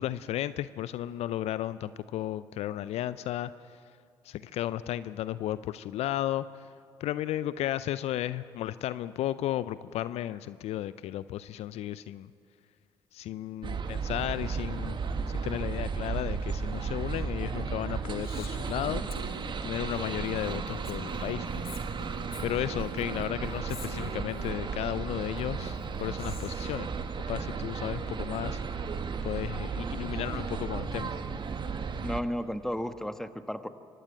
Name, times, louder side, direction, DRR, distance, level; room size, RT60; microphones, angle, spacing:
voice 1, 0.0-3.5 4.2-6.4 7.0-12.3 13.1-15.0 15.3-19.0 19.6-21.6 22.4-26.9 27.3-28.6 29.2-31.1, left 13 dB, 60° left, 16 dB, 0.5 m, -34 dB
sound 1, 13.6-32.2, right 5 dB, 40° right, 1.5 m, -34 dB
sound 2, 14.7-23.2, right 6 dB, 75° right, 2.6 m, -55 dB
Female speech woman speaking, 18.2-24.5 25.4-26.7, left 3 dB, 85° left, 2.0 m, -46 dB
voice 2, 32.0-33.7, equal, 5° left, 9 dB, 1.4 m, -33 dB
24.5 x 18.0 x 8.8 m, 2.3 s
hypercardioid pair, 50°, 12 cm